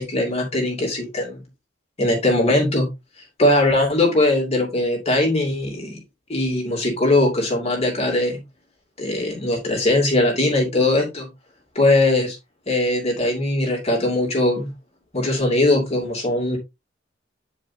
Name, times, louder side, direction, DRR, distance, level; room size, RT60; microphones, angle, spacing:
voice 1, 0.0-1.4 2.0-2.9 3.4-6.0 6.3-8.4 9.0-11.3 11.7-12.4 12.7-14.7 15.1-16.6, left 2 dB, 35° left, 2.7 m, -20 dB
9.7 x 5.0 x 2.7 m
head